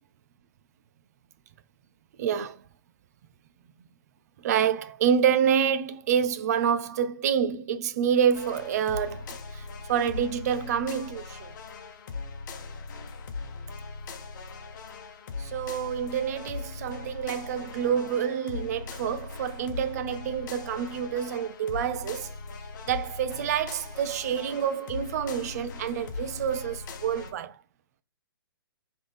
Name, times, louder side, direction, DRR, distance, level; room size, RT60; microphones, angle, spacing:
voice 1, 2.2-2.6 4.4-9.3 9.5-11.5 15.4-22.3 22.9-27.6, right 8 dB, 45° right, 0.5 m, -27 dB
sound 1, 8.3-27.3, left 4 dB, 50° left, 1.0 m, -40 dB
3.8 x 3.6 x 3.4 m
figure-of-eight pair, 130°, 12 cm